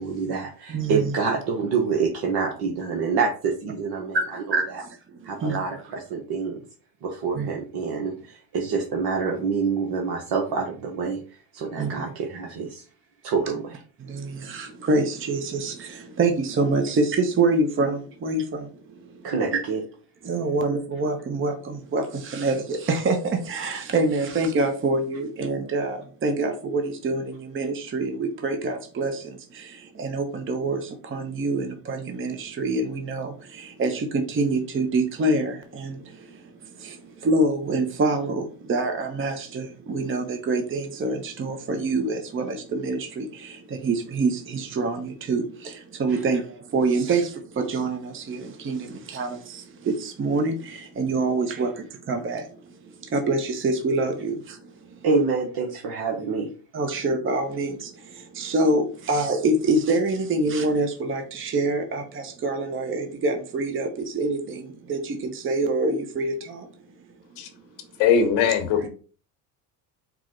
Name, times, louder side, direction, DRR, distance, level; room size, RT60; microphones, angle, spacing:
voice 1, 0.0-4.8 5.2-6.6 7.0-11.2 11.5-12.8 13.2-13.8 19.2-19.8 46.1-46.2 51.5-51.6 55.0-56.5, right 5 dB, 55° right, 1.0 m, -27 dB
voice 2, 0.7-1.1 4.1-5.6 7.3-7.5 11.8-12.0 14.0-19.2 19.5-19.6 20.2-55.0 56.7-66.7, right 2 dB, 25° right, 0.8 m, -26 dB
voice 3, 68.0-68.9, left 7 dB, 70° left, 1.1 m, -20 dB
4.7 x 2.1 x 3.7 m
hypercardioid pair, 75°, 47 cm